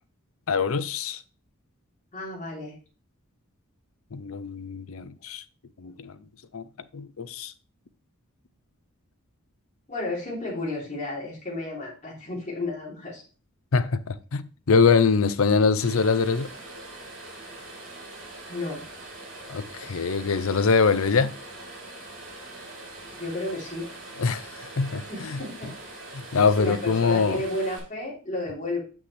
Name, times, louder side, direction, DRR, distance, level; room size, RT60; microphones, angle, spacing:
voice 1, 0.5-1.2 4.1-5.4 5.8-6.1 6.5-6.6 6.9-7.5 13.7-16.5 19.5-21.4 24.2-25.4 26.1-27.4, left 5 dB, 75° left, 0.6 m, -23 dB
voice 2, 2.1-2.7 9.9-13.2 18.5-18.8 23.2-23.9 25.1-25.7 26.6-28.8, left 2 dB, 35° left, 3.2 m, -32 dB
sound 1, 15.8-27.8, right 2 dB, 65° right, 2.9 m, -42 dB
7.8 x 6.1 x 3.3 m
head